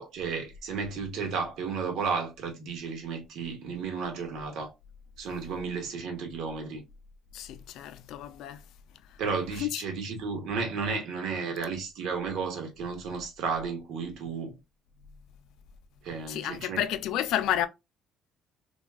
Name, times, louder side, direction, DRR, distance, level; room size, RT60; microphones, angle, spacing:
voice 1, 0.0-4.7 5.2-6.8 9.2-14.6 16.0-16.8, right 5 dB, 70° right, 1.0 m, -33 dB
voice 2, 7.3-8.6 9.1-9.2 9.6-9.8 16.3-17.7, left 11 dB, 75° left, 0.4 m, -31 dB
3.5 x 2.3 x 2.3 m
cardioid pair, 140°, 0 cm